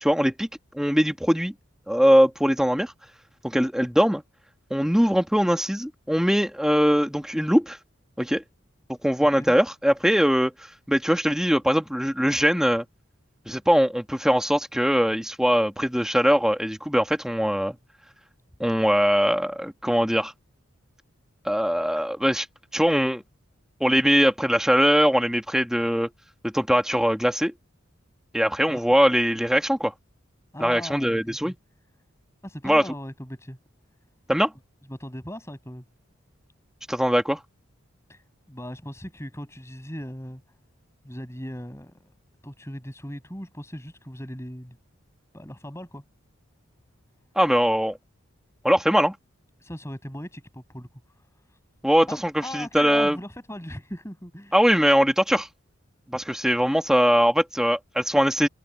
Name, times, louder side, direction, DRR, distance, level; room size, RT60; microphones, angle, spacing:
voice 1, 0.0-0.5 0.7-1.5 1.9-2.9 3.4-4.2 4.7-7.8 8.2-8.4 9.0-10.5 10.9-12.9 13.5-17.8 18.6-20.3 21.5-22.5 22.7-23.2 23.8-26.1 26.4-27.5 28.3-29.9 30.6-31.5 32.6-32.8 34.3-34.5 36.9-37.4 47.4-48.0 48.6-49.1 51.8-53.2 54.5-55.5 56.1-58.5, equal, 5° right, 1.9 m, -21 dB
voice 2, 9.2-9.5 28.7-28.8 30.5-31.5 32.4-33.6 34.9-35.8 38.1-40.4 41.0-42.1 42.4-44.8 45.3-46.0 49.6-51.6 52.1-54.6, equal, 15° left, 7.0 m, -39 dB
head